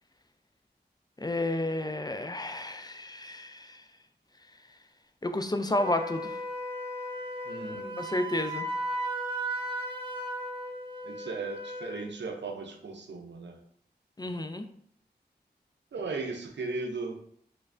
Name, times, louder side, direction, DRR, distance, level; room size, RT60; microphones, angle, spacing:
voice 1, 1.2-3.8 5.2-6.4 8.0-8.7 14.2-14.7, left 1 dB, 20° left, 7 dB, 0.4 m, -31 dB
Wind instrument woodwind instrument, 5.8-12.1, right 1 dB, 30° right, 0.9 m, -36 dB
voice 2, 7.4-8.0 11.0-13.6 15.9-17.2, right 3 dB, 85° right, 3 dB, 0.5 m, -37 dB
3.2 x 3.2 x 2.5 m, 0.65 s
cardioid pair, 45°, 18 cm